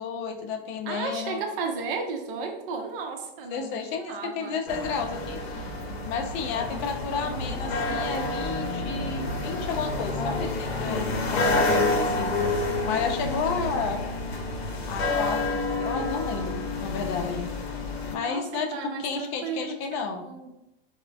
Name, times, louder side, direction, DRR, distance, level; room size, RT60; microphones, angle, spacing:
voice 1, 0.0-1.4 3.5-5.4 6.1-12.3 12.8-14.0 14.9-17.5 18.1-20.2, left 5 dB, 40° left, 5 dB, 0.5 m, -32 dB
voice 2, 0.8-4.6 10.3-10.8 13.3-13.6 18.2-20.5, right 4 dB, 60° right, 3 dB, 0.6 m, -35 dB
sound 1, 4.7-18.2, left 2 dB, 80° left, 0.6 m, -29 dB
3.1 x 2.1 x 2.3 m, 0.89 s
hypercardioid pair, 105°, 30 cm